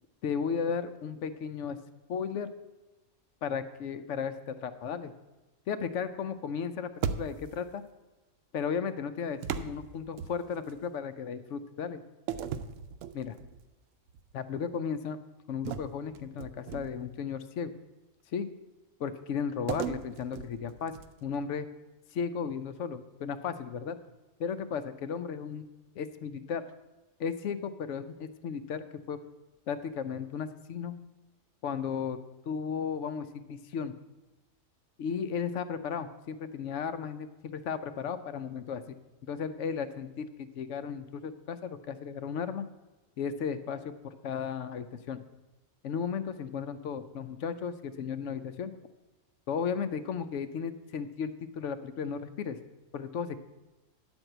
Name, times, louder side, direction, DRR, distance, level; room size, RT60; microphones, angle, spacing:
voice 1, 0.2-1.8 2.1-2.5 3.4-5.1 5.7-6.9 7.2-7.8 8.5-12.0 13.1-13.4 14.3-15.2 15.5-17.8 18.3-18.5 19.0-21.7 22.1-24.0 24.4-25.7 26.0-26.6 27.2-29.2 29.7-31.0 31.6-32.2 32.5-33.9 35.0-38.8 39.2-42.7 43.2-45.2 45.8-48.7 49.5-52.6 52.9-53.4, left 6 dB, 70° left, 11 dB, 0.9 m, -35 dB
sound 1, 7.0-7.7 9.4-10.8 12.3-13.6 14.1-14.3 15.6-17.2 19.7-21.3, right 8 dB, 75° right, 0.9 m, -37 dB
10.5 x 4.4 x 7.8 m, 1.1 s
omnidirectional pair, 1.4 m